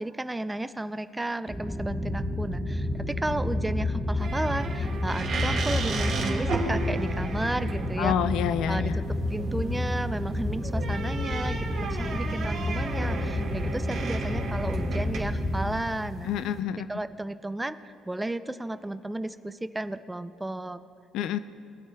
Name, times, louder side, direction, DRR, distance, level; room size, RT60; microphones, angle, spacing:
voice 1, 0.0-8.2 8.7-9.0 9.3-16.5 16.9-20.8, right 1 dB, 10° right, 12 dB, 0.3 m, -33 dB
sound 1, 1.5-15.7, left 1 dB, 10° left, 1.1 m, -30 dB
sound 2, 4.2-16.6, right 3 dB, 65° right, 2.0 m, -35 dB
voice 2, 8.0-9.0 16.2-16.9 21.1-21.4, left 10 dB, 75° left, 12 dB, 0.3 m, -27 dB
21.0 x 9.3 x 2.2 m, 2.4 s
cardioid pair, 95°, 0 cm